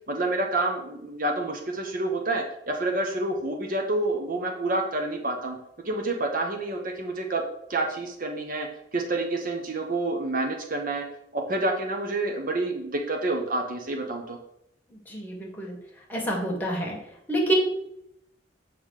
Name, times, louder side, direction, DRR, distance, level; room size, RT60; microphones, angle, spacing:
voice 1, 0.1-5.6 5.8-7.4 7.7-11.0 11.3-14.4, right 2 dB, 50° right, 3 dB, 1.0 m, -28 dB
voice 2, 15.1-15.8 16.1-17.0 17.3-17.5, right 1 dB, 10° left, -1 dB, 1.8 m, -27 dB
7.7 x 3.8 x 6.5 m, 0.78 s
head